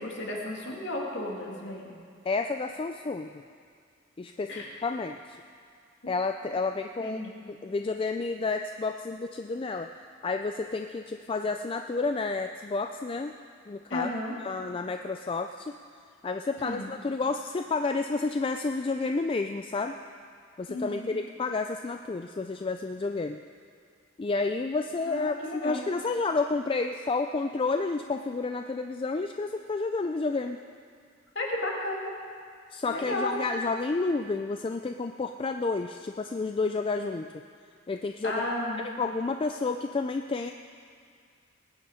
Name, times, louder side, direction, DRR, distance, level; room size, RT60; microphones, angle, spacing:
voice 1, 0.0-1.9 4.5-4.7 7.0-7.3 13.9-14.4 16.6-16.9 20.7-21.2 25.1-25.8 31.3-32.1 32.9-33.4 38.2-38.8, left 1 dB, 60° left, -2 dB, 2.4 m, -33 dB
voice 2, 2.2-3.4 4.2-5.2 6.1-7.2 7.5-9.9 10.2-13.3 13.7-14.1 14.4-15.7 16.2-19.9 20.6-23.4 24.2-30.6 32.7-37.3 37.9-38.5 38.8-40.5, left 3 dB, 25° left, 6 dB, 0.3 m, -30 dB
19.5 x 9.5 x 4.9 m, 2.2 s
head